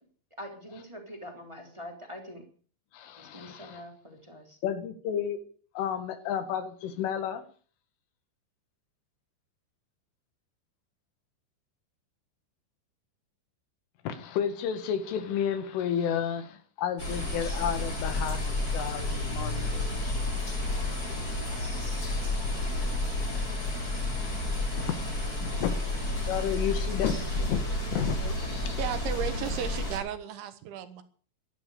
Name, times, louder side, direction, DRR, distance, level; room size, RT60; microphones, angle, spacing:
voice 1, 0.4-2.4 3.2-4.6, equal, 10° right, 3 dB, 2.5 m, -44 dB
voice 2, 2.9-3.8 4.6-5.4 5.8-7.4 14.1-18.4 18.7-19.9 25.6-25.7 26.3-27.6 27.9-28.4, left 8 dB, 85° left, 10 dB, 4.5 m, -31 dB
sound 1, 17.0-30.0, left 2 dB, 20° left, 5.1 m, -31 dB
voice 3, 28.8-31.0, right 10 dB, 75° right, 11 dB, 3.8 m, -34 dB
15.5 x 12.5 x 6.7 m, 0.43 s
omnidirectional pair, 5.5 m